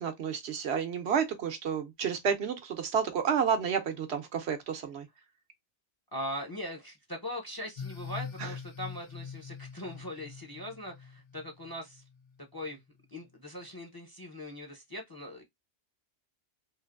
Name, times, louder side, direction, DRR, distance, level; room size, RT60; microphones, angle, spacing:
voice 1, 0.0-5.1 8.4-8.5, right 7 dB, 70° right, 0.9 m, -30 dB
voice 2, 6.1-12.0 12.5-12.8 13.1-15.4, left 1 dB, 25° left, 0.6 m, -40 dB
sound 1, 7.8-12.3, left 6 dB, 80° left, 1.3 m, -44 dB
3.2 x 2.6 x 2.5 m
omnidirectional pair, 1.2 m